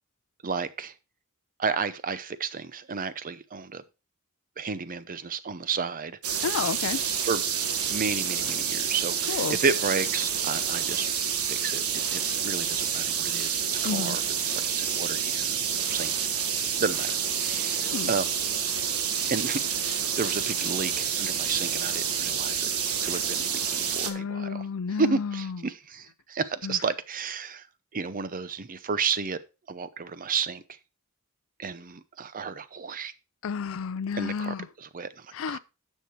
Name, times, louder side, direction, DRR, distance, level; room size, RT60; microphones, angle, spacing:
voice 1, 0.4-0.9 1.6-3.8 4.6-6.5 7.2-7.4 7.9-11.1 11.4-11.8 12.1-15.6 15.9-16.1 16.8-17.1 17.4-18.3 19.3-22.7 23.0-24.7 25.0-27.7 27.9-29.4 29.7-30.8 31.6-33.1 34.1-35.6, right 5 dB, 40° right, 0.7 m, -32 dB
sound 1, 6.2-24.1, right 7 dB, 85° right, 1.3 m, -28 dB
voice 2, 6.4-7.0 9.3-9.6 13.8-14.2 17.8-18.1 24.0-25.6 26.6-26.8 33.4-34.7 35.3-35.6, left 6 dB, 65° left, 0.5 m, -31 dB
9.8 x 6.5 x 4.5 m
head